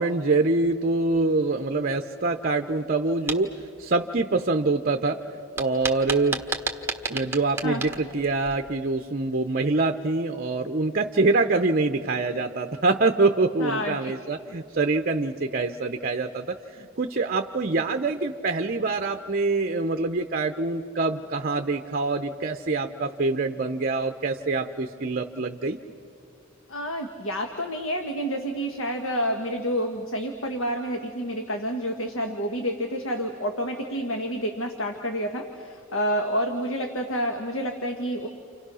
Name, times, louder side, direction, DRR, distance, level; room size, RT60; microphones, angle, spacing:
voice 1, 0.0-3.5 3.8-5.2 5.6-6.4 7.1-25.8, right 3 dB, 45° right, 6 dB, 0.7 m, -25 dB
sound 1, 3.1-3.4 5.6-8.8, right 4 dB, 10° right, 1.4 m, -31 dB
voice 2, 13.6-14.1 26.7-38.3, equal, 75° left, 4 dB, 1.5 m, -29 dB
30.0 x 28.0 x 6.3 m, 2.5 s
head